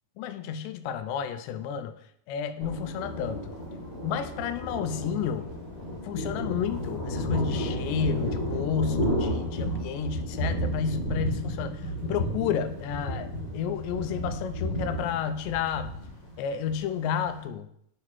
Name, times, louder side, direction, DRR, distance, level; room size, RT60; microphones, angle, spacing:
voice 1, 0.2-1.9 2.3-3.5 4.0-5.5 6.0-15.9 16.4-17.7, left 8 dB, 80° left, 10 dB, 2.2 m, -31 dB
Thunder, 2.6-17.4, equal, 40° left, 1.6 m, -32 dB
7.9 x 3.7 x 4.4 m, 0.71 s
omnidirectional pair, 4.2 m